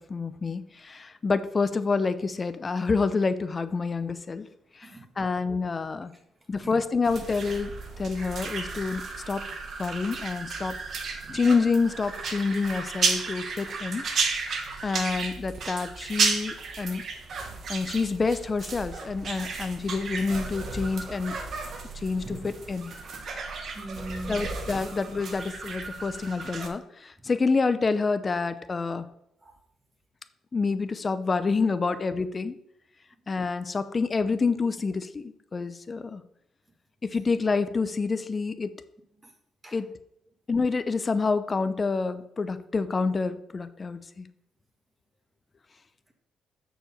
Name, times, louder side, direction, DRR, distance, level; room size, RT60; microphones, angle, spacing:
voice 1, 0.0-4.5 4.8-4.9 5.2-6.1 6.5-7.7 8.0-9.5 9.8-10.8 11.3-14.0 14.8-17.0 17.7-21.4 22.0-22.9 24.3-29.1 30.5-32.6 33.3-36.2 37.0-38.7 39.7-39.9 40.5-44.3, left 4 dB, 30° left, 12 dB, 0.6 m, -28 dB
voice 2, 4.8-5.3 6.6-6.7 16.9-17.0 22.2-22.4 23.7-24.5 29.4-29.5 39.2-39.3 39.6-39.8, right 1 dB, 20° right, 3 dB, 1.7 m, -40 dB
sound 1, 7.0-26.7, right 4 dB, 55° right, 1.3 m, -33 dB
6.6 x 4.8 x 6.6 m, 0.75 s
cardioid pair, 90°, 0 cm